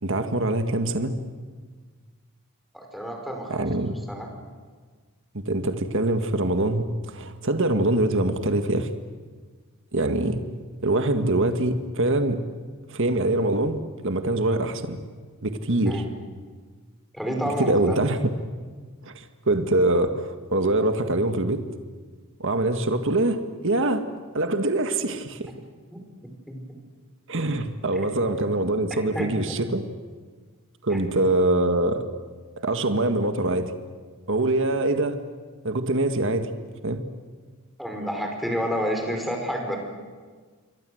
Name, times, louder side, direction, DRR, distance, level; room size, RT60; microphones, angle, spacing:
voice 1, 0.0-1.2 3.5-4.0 5.3-8.9 9.9-10.4 10.8-12.4 12.9-15.0 15.4-16.0 17.6-18.2 19.1-21.6 22.4-24.0 24.3-25.5 27.3-29.8 30.8-32.0 32.6-33.7 34.3-35.2 35.6-36.5 36.8-37.0, right 2 dB, 60° right, 7 dB, 1.8 m, -24 dB
voice 2, 2.7-3.7 4.1-4.3 15.9-16.1 17.1-18.0 25.9-26.1 26.5-26.6 29.1-29.3 30.9-31.0 37.8-39.8, equal, ahead, 2 dB, 5.3 m, -29 dB
28.5 x 23.5 x 8.0 m, 1.5 s
head